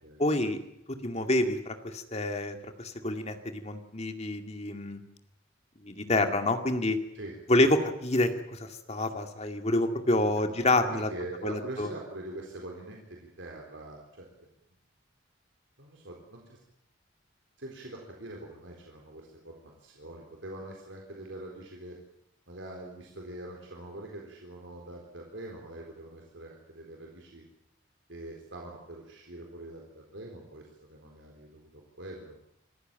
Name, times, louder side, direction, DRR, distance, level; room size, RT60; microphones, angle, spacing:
voice 1, 0.2-0.6 0.9-5.0 5.8-7.0 7.5-11.1 11.4-11.9, left 1 dB, 35° left, 6 dB, 2.2 m, -28 dB
voice 2, 10.4-14.3 15.8-16.6 17.6-22.0 22.5-27.4 28.1-31.7 32.0-32.4, right 1 dB, 70° right, 0 dB, 4.1 m, -44 dB
27.0 x 14.5 x 9.2 m, 0.81 s
head